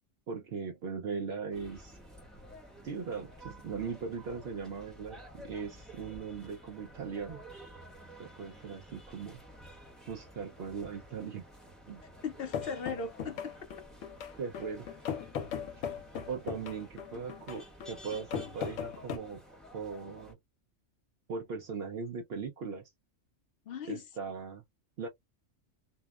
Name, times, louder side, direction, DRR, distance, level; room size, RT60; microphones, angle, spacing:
voice 1, 0.3-2.0 2.8-7.4 8.2-9.4 10.1-11.4 11.9-12.0 14.4-14.9 16.3-19.4 19.7-20.4 21.3-22.9 23.9-24.6 25.0-25.1, right 5 dB, 60° right, 0.7 m, -39 dB
sound 1, 1.5-20.3, equal, ahead, 0.8 m, -52 dB
voice 2, 12.2-13.6 23.7-24.0, left 5 dB, 60° left, 0.7 m, -38 dB
sound 2, 12.5-19.2, left 8 dB, 80° left, 1.0 m, -38 dB
2.8 x 2.0 x 2.2 m
omnidirectional pair, 1.3 m